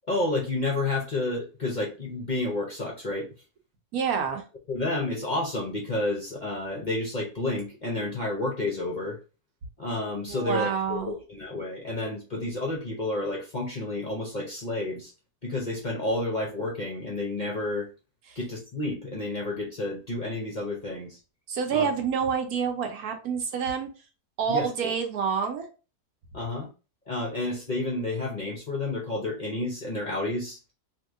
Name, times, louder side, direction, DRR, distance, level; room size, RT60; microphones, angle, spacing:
voice 1, 0.1-3.3 4.7-9.2 9.8-15.1 15.4-17.9 18.3-21.2 21.7-21.9 24.5-24.7 26.3-26.7 27.1-30.6, left 2 dB, 40° left, 0.7 m, -30 dB
voice 2, 3.9-4.4 10.3-11.1 18.3-18.4 21.5-23.9 24.4-25.7, right 6 dB, 75° right, 1.2 m, -28 dB
3.1 x 2.8 x 3.6 m
omnidirectional pair, 1.6 m